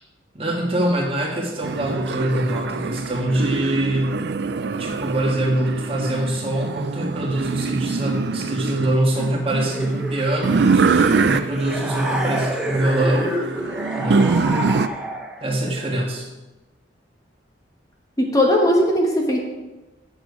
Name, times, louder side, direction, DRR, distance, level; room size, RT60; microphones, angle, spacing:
voice 1, 0.3-4.1 4.8-13.6 13.9-14.4 15.4-16.3, right 1 dB, 30° right, 0 dB, 1.6 m, -24 dB
sound 1, 1.6-14.9, right 4 dB, 65° right, 0.4 m, -24 dB
sound 2, 9.7-15.5, right 1 dB, 5° right, 0.8 m, -29 dB
voice 2, 18.2-19.4, equal, 20° left, 0 dB, 1.1 m, -18 dB
8.8 x 6.9 x 4.8 m, 1.1 s
head